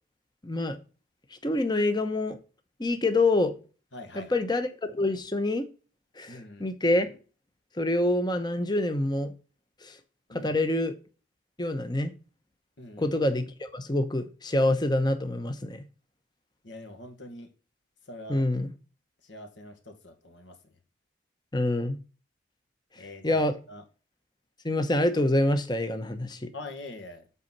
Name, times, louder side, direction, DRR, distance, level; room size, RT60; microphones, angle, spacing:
voice 1, 0.4-0.8 1.4-2.4 2.8-3.5 4.2-5.6 6.2-7.1 7.8-9.3 9.8-9.9 10.3-10.9 11.6-12.1 13.0-15.8 18.3-18.7 21.5-22.0 23.2-23.5 24.6-26.5, left 1 dB, 20° left, 1.0 m, -26 dB
voice 2, 3.9-4.4 6.3-6.7 10.3-10.6 12.8-13.2 16.6-17.5 18.1-18.5 19.2-20.7 23.0-23.8 26.5-27.2, left 2 dB, 65° left, 1.7 m, -44 dB
8.3 x 4.1 x 6.1 m
head